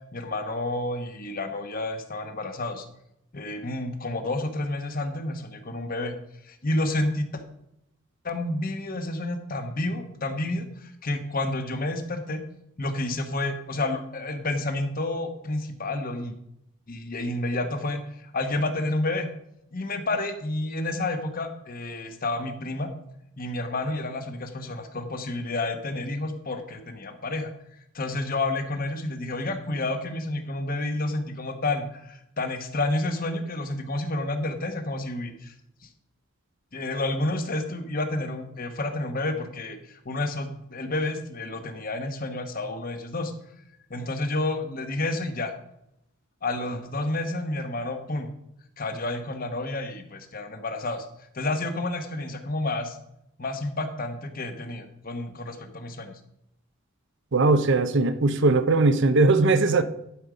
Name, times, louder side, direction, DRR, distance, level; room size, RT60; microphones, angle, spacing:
voice 1, 0.1-2.8 3.3-6.1 6.4-7.4 8.2-12.4 12.8-16.3 16.9-19.3 19.7-22.9 23.4-27.5 27.9-35.5 35.8-35.9 36.7-43.3 43.9-45.5 46.4-48.3 48.8-51.1 51.3-53.0 53.4-56.2, left 2 dB, 40° left, 1.2 m, -30 dB
voice 2, 57.3-59.8, right 3 dB, 55° right, 0.7 m, -20 dB
11.5 x 5.4 x 4.9 m
head